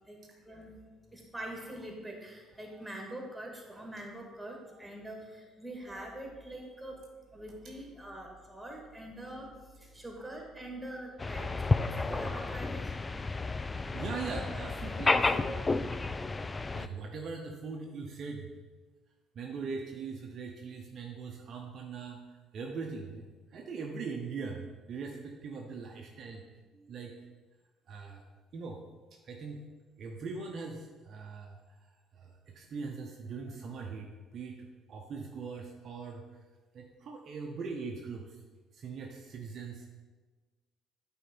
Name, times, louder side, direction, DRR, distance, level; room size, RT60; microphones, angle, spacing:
voice 1, 0.5-0.8 1.1-12.9, right 1 dB, 5° right, 0 dB, 2.0 m, -44 dB
sound 1, 11.2-16.9, left 3 dB, 25° left, 0.3 m, -31 dB
voice 2, 13.9-15.9 16.7-18.5 19.3-26.4 26.7-27.1 27.9-28.8 29.2-29.7 30.0-31.6 32.1-36.2 36.7-38.4 38.7-39.9, right 4 dB, 50° right, 1 dB, 0.6 m, -41 dB
9.0 x 3.7 x 4.4 m, 1.3 s
figure-of-eight pair, 50°, 0 cm